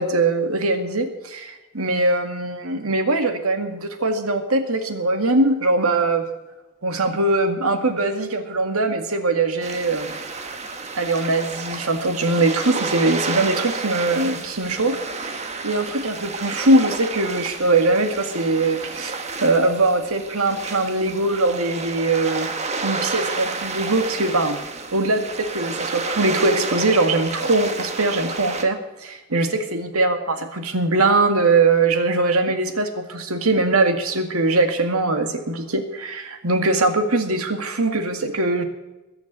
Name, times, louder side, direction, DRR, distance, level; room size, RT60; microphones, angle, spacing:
voice 1, 0.0-6.3 6.8-10.1 10.9-19.1 19.4-22.5 22.8-24.6 24.9-38.6, right 2 dB, 85° right, 6 dB, 2.1 m, -21 dB
sound 1, 9.6-28.6, right 4 dB, 30° right, 1.4 m, -30 dB
21.0 x 7.1 x 8.3 m, 1.1 s
head